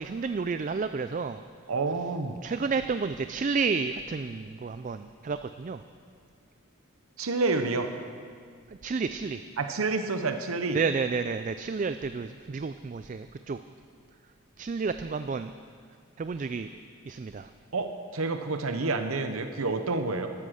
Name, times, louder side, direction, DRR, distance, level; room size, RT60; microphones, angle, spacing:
voice 1, 0.0-1.4 2.4-5.8 8.8-9.4 10.7-13.6 14.6-15.5 16.2-16.7 17.1-17.5, right 5 dB, 35° right, 10 dB, 0.3 m, -31 dB
voice 2, 1.7-2.4 7.2-7.9 9.6-10.8 17.7-20.3, right 3 dB, 80° right, 7 dB, 0.8 m, -29 dB
13.0 x 12.5 x 6.5 m, 2.1 s
head